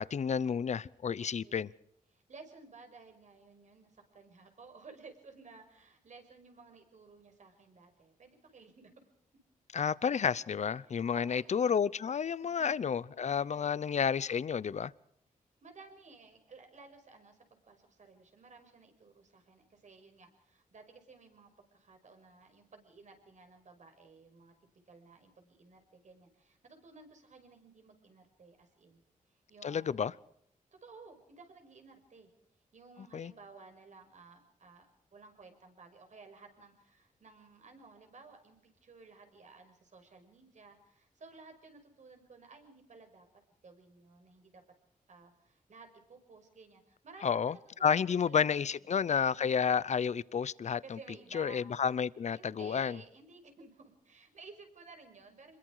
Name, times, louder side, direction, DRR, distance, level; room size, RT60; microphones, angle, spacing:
voice 1, 0.0-1.7 9.7-14.9 29.6-30.1 33.1-33.3 47.2-51.0 51.3-53.0, left 7 dB, 55° left, 0.7 m, -31 dB
voice 2, 1.2-1.6 2.1-9.0 10.9-11.4 12.4-14.0 15.6-24.5 24.9-29.0 29.3-30.0 30.8-32.3 32.7-43.3 43.6-44.6 45.1-49.7 50.8-51.7 52.3-55.6, right 4 dB, 55° right, 5.7 m, -56 dB
27.0 x 22.0 x 4.9 m
wide cardioid pair, 110°, 14 cm